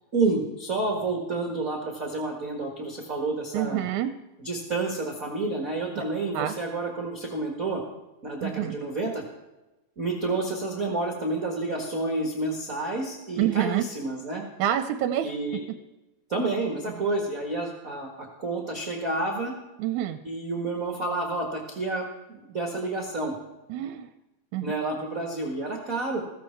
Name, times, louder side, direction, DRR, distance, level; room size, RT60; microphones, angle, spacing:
voice 1, 0.1-3.8 4.4-7.8 8.2-9.2 10.0-14.4 15.2-15.6 16.3-19.5 20.2-23.3 24.6-26.2, right 2 dB, 35° right, 2 dB, 1.5 m, -29 dB
voice 2, 3.5-4.1 6.0-6.1 6.3-6.6 8.4-8.8 13.4-13.9 14.6-15.3 17.0-17.1 19.8-20.2 23.7-24.1 24.5-24.7, right 11 dB, 80° right, 10 dB, 2.0 m, -27 dB
15.5 x 15.0 x 4.4 m, 1.1 s
omnidirectional pair, 3.5 m